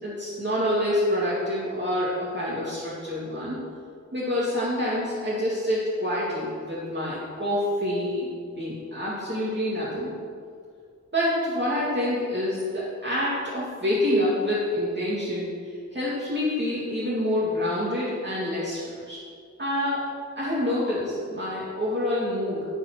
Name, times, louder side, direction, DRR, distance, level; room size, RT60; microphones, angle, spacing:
voice 1, 0.0-3.6 4.1-8.3 8.6-10.2 11.1-19.2 19.6-20.0 20.4-22.7, left 1 dB, 35° right, -8 dB, 2.5 m, -27 dB
14.5 x 4.8 x 6.2 m, 2.1 s
wide cardioid pair, 85°, 30 cm